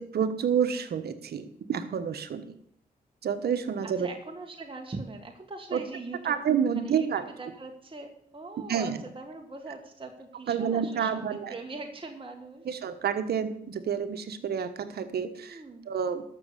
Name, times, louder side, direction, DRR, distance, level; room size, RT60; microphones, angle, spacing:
voice 1, 0.0-2.5 3.2-4.1 5.7-5.8 6.2-7.3 8.7-9.0 10.5-11.5 12.6-16.2, right 7 dB, 75° right, 9 dB, 1.2 m, -29 dB
voice 2, 3.8-6.4 6.7-7.1 7.4-12.7 15.5-15.9, right 3 dB, 30° right, 3 dB, 1.7 m, -41 dB
12.5 x 6.7 x 6.8 m, 0.67 s
supercardioid pair, 50°, 17 cm